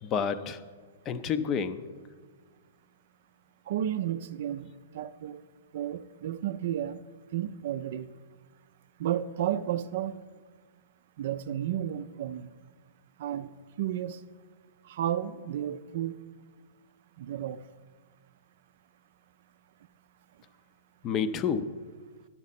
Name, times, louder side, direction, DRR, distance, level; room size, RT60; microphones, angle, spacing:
voice 1, 0.0-0.6 1.1-1.8 21.0-21.7, left 6 dB, 30° left, 0.5 m, -29 dB
voice 2, 3.7-4.7 4.9-5.4 5.7-7.0 7.3-8.1 9.0-10.2 11.2-12.5 13.2-13.5 13.8-14.2 14.9-16.2 17.2-17.6, right 11 dB, 60° right, 0.4 m, -32 dB
10.5 x 7.3 x 4.2 m
hypercardioid pair, 125°, 0 cm